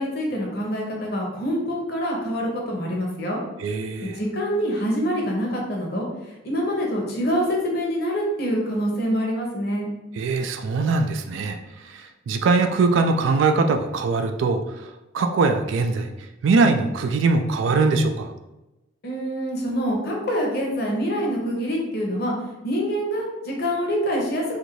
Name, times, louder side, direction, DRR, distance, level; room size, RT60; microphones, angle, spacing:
voice 1, 0.0-3.4 4.0-9.9 19.0-24.4, equal, 50° left, -1 dB, 0.7 m, -26 dB
voice 2, 3.6-4.2 10.1-14.9 15.1-16.1 16.4-18.3, right 3 dB, 70° right, 6 dB, 0.3 m, -22 dB
2.6 x 2.5 x 3.0 m, 0.99 s
head